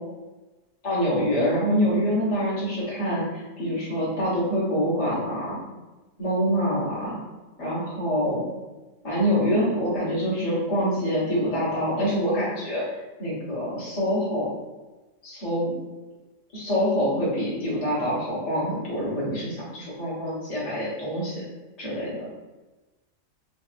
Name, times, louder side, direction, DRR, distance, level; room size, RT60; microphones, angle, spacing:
voice 1, 0.8-5.6 6.2-7.2 7.6-8.4 9.0-14.5 15.2-15.7 16.5-21.4 21.8-22.2, equal, 30° left, -9 dB, 1.2 m, -25 dB
4.1 x 2.5 x 2.4 m, 1.1 s
omnidirectional pair, 1.5 m